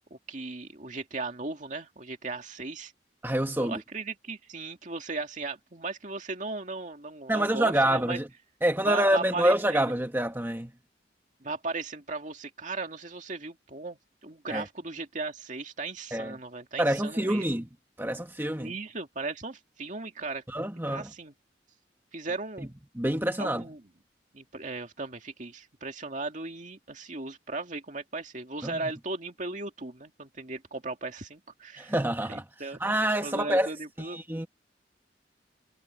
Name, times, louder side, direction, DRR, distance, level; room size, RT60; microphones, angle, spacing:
voice 1, 0.1-2.9 3.6-8.2 8.8-9.9 11.4-17.5 18.6-20.4 20.9-21.3 22.1-22.7 23.4-23.8 24.3-31.9 32.3-32.8 33.2-34.2, right 3 dB, 45° right, 2.3 m, -37 dB
voice 2, 3.2-3.8 7.3-8.3 8.6-10.7 14.5-14.6 16.1-16.3 16.8-17.7 18.0-18.7 20.5-21.1 23.0-23.6 28.6-28.7 31.8-32.4 32.8-33.7 34.0-34.5, right 1 dB, 10° right, 1.5 m, -27 dB
head